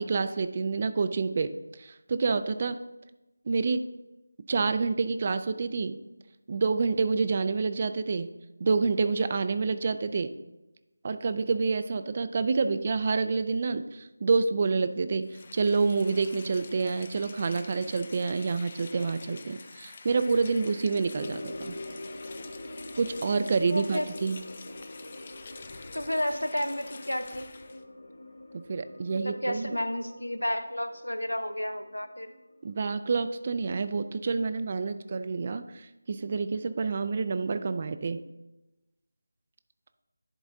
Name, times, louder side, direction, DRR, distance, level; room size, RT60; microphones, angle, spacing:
voice 1, 0.0-1.5 1.8-2.8 3.5-3.8 4.5-6.0 6.5-8.3 8.6-10.3 11.0-21.8 23.0-24.4 28.7-29.8 32.6-38.2, right 4 dB, 35° right, 11 dB, 0.3 m, -28 dB
Rain, 15.2-27.8, left 4 dB, 35° left, 0.4 m, -48 dB
sound 1, 21.2-33.7 34.0-34.1 34.6-34.7, left 1 dB, 55° left, 0.8 m, -45 dB
voice 2, 23.7-24.1 25.9-27.5 29.1-32.3, left 1 dB, 85° left, 10 dB, 0.7 m, -31 dB
10.5 x 4.1 x 3.6 m, 1.0 s
figure-of-eight pair, 165°, 0 cm